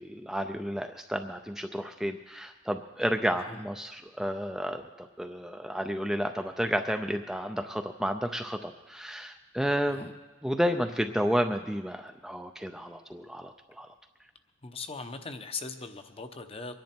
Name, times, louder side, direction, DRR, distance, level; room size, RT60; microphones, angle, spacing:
voice 1, 0.0-10.1 10.4-13.9, equal, ahead, 5 dB, 0.5 m, -31 dB
voice 2, 14.6-16.8, left 4 dB, 30° left, 8 dB, 0.9 m, -40 dB
23.5 x 10.5 x 4.5 m, 1.2 s
head